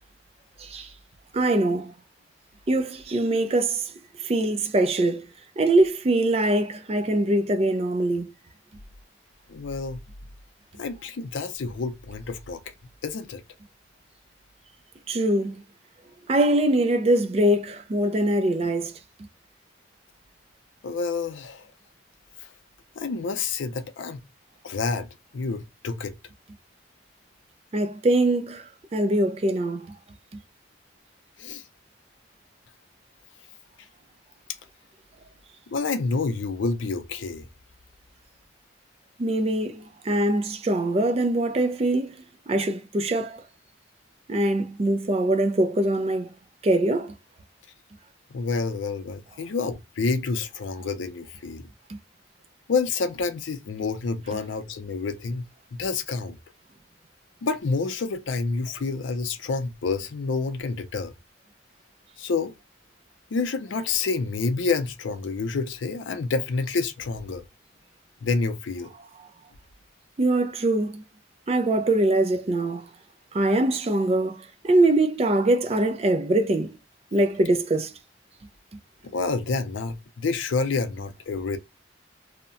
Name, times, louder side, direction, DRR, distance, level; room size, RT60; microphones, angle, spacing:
voice 1, 0.6-0.9 1.3-1.9 2.7-3.9 4.2-5.3 5.6-8.3 15.1-15.6 16.3-18.9 27.7-29.9 39.2-43.5 44.3-46.3 46.6-47.1 51.9-52.0 69.2-69.3 70.2-71.0 71.5-72.9 73.3-76.8 77.1-77.9, right 1 dB, 30° right, 0.3 m, -23 dB
voice 2, 9.5-10.0 10.8-12.6 13.0-13.4 20.8-21.6 23.0-24.2 24.6-25.1 25.3-26.2 31.4-31.6 35.7-37.5 48.3-51.6 52.7-55.5 55.7-56.4 57.4-61.1 62.2-62.5 63.3-67.4 68.2-68.9 79.1-81.6, left 4 dB, 75° left, 0.5 m, -28 dB
2.7 x 2.1 x 2.5 m
head